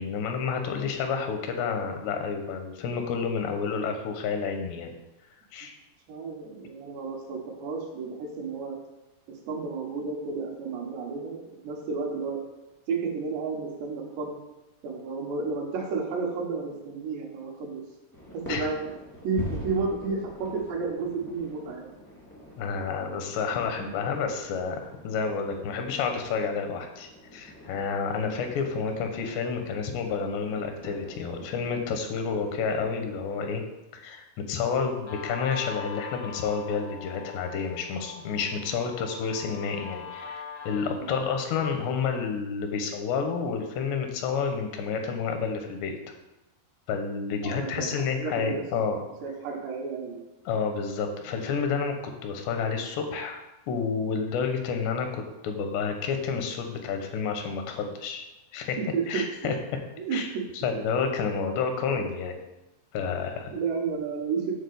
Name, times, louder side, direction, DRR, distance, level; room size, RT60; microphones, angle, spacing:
voice 1, 0.0-4.9 5.5-5.7 18.5-18.7 22.6-33.6 33.9-45.9 46.9-49.0 50.5-51.9 52.2-58.3 58.5-58.8 59.1-59.6 60.1-60.3 60.6-62.4 62.9-63.5, left 5 dB, 90° left, 5 dB, 3.2 m, -30 dB
voice 2, 6.1-8.8 9.3-12.4 12.9-14.4 14.8-17.8 18.3-18.8 19.2-21.9 23.8-23.9 41.0-41.2 47.4-47.9 48.2-48.6 49.2-50.2 58.8-59.6 60.0-60.2 63.5-64.5, right 4 dB, 85° right, -1 dB, 3.7 m, -32 dB
sound 1, 18.1-33.6, left 1 dB, 10° left, 0.5 m, -45 dB
Guitar, 35.1-42.0, left 6 dB, 70° left, 1.1 m, -42 dB
9.0 x 3.9 x 6.8 m, 0.99 s
omnidirectional pair, 4.7 m